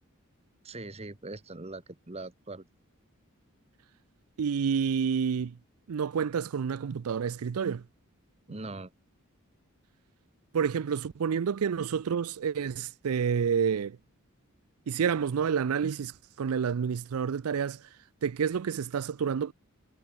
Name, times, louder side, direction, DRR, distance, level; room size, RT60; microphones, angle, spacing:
voice 1, 0.6-2.6 8.5-8.9, right 2 dB, 30° right, 1.2 m, -41 dB
voice 2, 4.4-5.5 5.9-7.8 10.5-14.0 14.9-17.9 18.2-19.5, right 7 dB, 90° right, 0.4 m, -29 dB
head